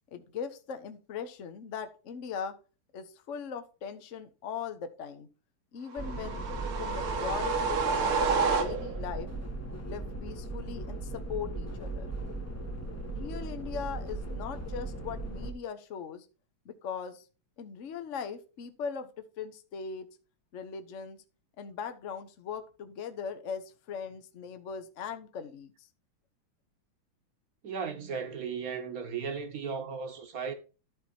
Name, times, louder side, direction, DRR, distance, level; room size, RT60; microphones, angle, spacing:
voice 1, 0.1-2.5 2.9-5.3 5.7-6.4 6.7-9.3 9.8-12.1 13.1-16.3 16.6-17.2 17.6-20.1 20.5-21.2 21.6-25.7, left 7 dB, 50° left, 0.9 m, -39 dB
sound 1, 5.9-9.1, right 5 dB, 75° right, 2.1 m, -29 dB
sound 2, 6.0-15.5, right 2 dB, 10° left, 0.7 m, -38 dB
voice 2, 27.6-30.5, right 6 dB, 45° right, 1.4 m, -36 dB
12.5 x 4.4 x 4.3 m
omnidirectional pair, 2.4 m